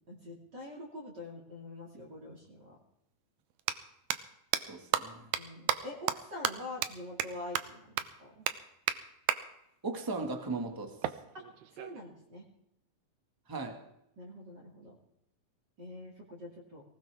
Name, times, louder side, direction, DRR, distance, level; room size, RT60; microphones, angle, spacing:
voice 1, 0.1-2.8 5.4-8.4 11.7-12.4 14.2-15.0 15.8-16.8, left 1 dB, 35° right, -4 dB, 2.9 m, -45 dB
sound 1, 2.4-2.5 3.5-3.7 4.1-4.2 4.5-4.6 4.9-5.0 5.3-5.4 5.7-5.8 6.1-6.2 6.4-6.5 6.8-6.9 7.2-7.3 7.5-7.6 8.0-8.1 8.5-8.6 8.9-9.0 9.3-9.4 11.0-12.0, right 12 dB, 80° right, 2.2 m, -30 dB
voice 2, 4.6-5.3 9.8-11.1 13.5-13.8, right 3 dB, 15° right, 4 dB, 0.9 m, -37 dB
19.0 x 18.5 x 3.5 m, 0.79 s
omnidirectional pair, 3.5 m